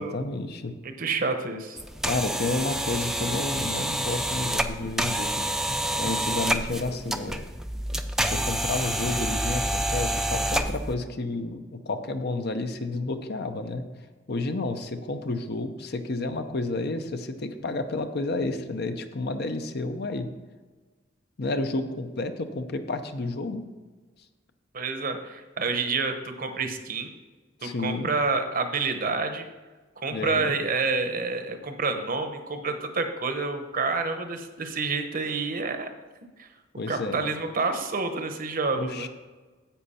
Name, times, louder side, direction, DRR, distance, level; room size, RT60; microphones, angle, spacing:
voice 1, 0.0-0.7 2.0-7.4 8.2-13.8 14.3-20.3 21.4-23.6 27.6-28.1 30.1-30.6 36.8-37.2 38.7-39.1, left 2 dB, 55° left, 8 dB, 0.7 m, -31 dB
voice 2, 0.8-1.8 24.7-27.1 27.6-29.5 30.0-35.9 36.4-36.5 36.9-39.1, right 4 dB, 45° right, 7 dB, 0.9 m, -28 dB
sound 1, 1.8-10.9, right 1 dB, ahead, 0.4 m, -28 dB
10.0 x 7.9 x 4.3 m, 1.3 s
head